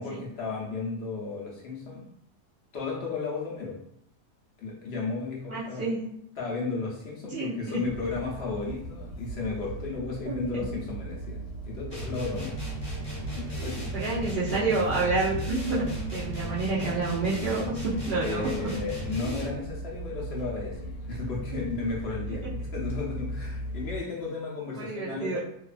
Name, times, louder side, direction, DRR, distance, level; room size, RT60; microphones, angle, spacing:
voice 1, 0.0-2.1 2.7-3.8 4.6-5.9 6.4-12.6 13.4-14.0 18.2-25.4, left 4 dB, 65° left, -3 dB, 0.6 m, -34 dB
voice 2, 5.5-6.3 7.3-7.8 10.2-10.6 13.9-18.7 19.3-19.5 21.5-21.7 24.7-25.4, right 3 dB, 70° right, -8 dB, 0.5 m, -29 dB
sound 1, 7.8-24.0, right 2 dB, 85° left, 1.2 m, -38 dB
sound 2, 11.9-19.7, equal, 10° left, 0.5 m, -37 dB
2.8 x 2.2 x 2.4 m, 0.70 s
omnidirectional pair, 1.7 m